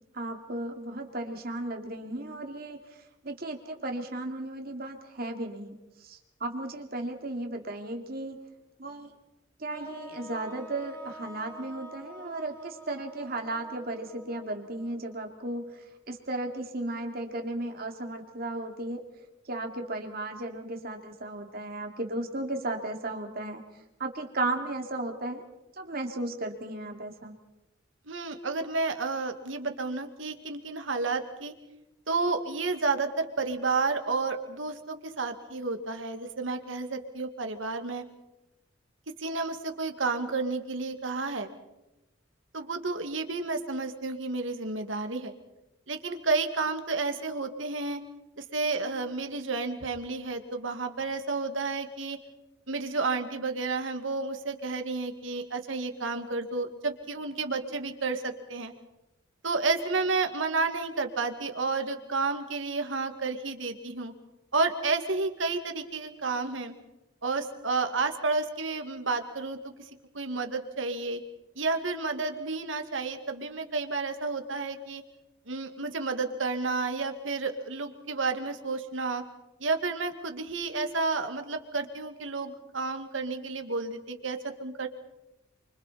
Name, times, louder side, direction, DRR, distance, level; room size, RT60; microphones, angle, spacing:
voice 1, 0.1-2.8 3.2-5.8 6.0-8.4 8.8-9.1 9.6-15.7 16.1-19.0 19.5-23.6 24.0-25.4 25.8-27.3, right 2 dB, 50° right, 3 dB, 2.7 m, -35 dB
sound 1, 9.7-15.8, right 1 dB, 10° left, 6.9 m, -48 dB
voice 2, 28.1-31.5 32.1-38.0 39.2-41.5 42.5-45.3 45.9-48.0 48.4-52.2 52.7-58.7 59.4-64.1 64.5-66.7 67.2-69.7 70.1-71.2 71.6-75.0 75.5-79.2 79.6-84.9, right 3 dB, 80° right, 6 dB, 2.1 m, -31 dB
29.5 x 24.5 x 4.3 m, 0.96 s
head